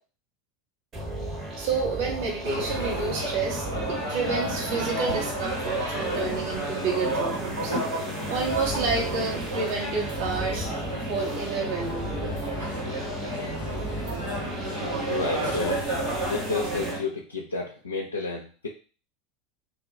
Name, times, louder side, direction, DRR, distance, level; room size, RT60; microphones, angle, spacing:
sound 1, 0.9-16.9, right 1 dB, 35° right, 1.1 m, -36 dB
voice 1, 1.6-12.1, right 5 dB, 65° right, -1 dB, 1.2 m, -30 dB
sound 2, 2.4-17.0, right 1 dB, 85° right, 1.5 m, -31 dB
voice 2, 15.1-15.9 16.3-18.7, left 3 dB, 90° left, 0 dB, 0.4 m, -31 dB
2.6 x 2.3 x 4.0 m, 0.38 s
hypercardioid pair, 80°, 0 cm